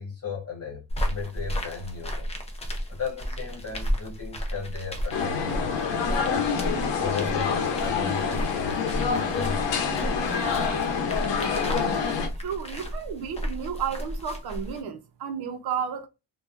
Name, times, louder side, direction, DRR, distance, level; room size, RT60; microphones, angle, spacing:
voice 1, 0.0-2.3 2.9-6.5 7.0-9.8, left 5 dB, 35° left, 1.1 m, -36 dB
sound 1, 0.9-14.8, equal, 15° left, 0.3 m, -33 dB
sound 2, 5.1-12.3, left 6 dB, 75° left, 0.8 m, -27 dB
voice 2, 12.4-16.1, right 7 dB, 60° right, 0.6 m, -32 dB
2.9 x 2.2 x 2.4 m
cardioid pair, 170°, 43 cm